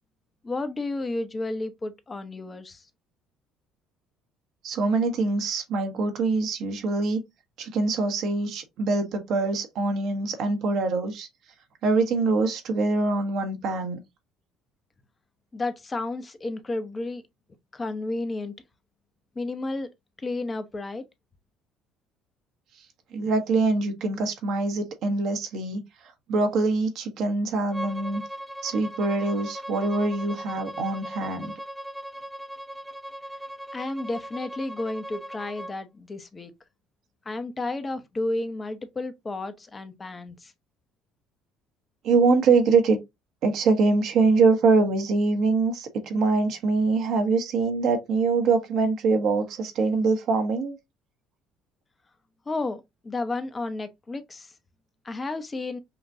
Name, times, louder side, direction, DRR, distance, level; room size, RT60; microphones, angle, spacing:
voice 1, 0.4-2.9 15.5-17.2 17.7-18.5 19.3-19.9 20.2-21.0 33.7-36.5 37.2-40.5 52.5-54.5 55.0-55.8, left 2 dB, 30° left, 0.9 m, -32 dB
voice 2, 4.6-7.2 7.6-11.3 11.8-14.0 23.1-25.8 26.3-28.2 28.6-31.5 42.0-43.0 43.4-50.8, right 3 dB, 65° right, 1.2 m, -24 dB
Bowed string instrument, 27.7-35.8, right 1 dB, ahead, 0.7 m, -39 dB
5.8 x 2.5 x 2.6 m
hypercardioid pair, 70°, 0 cm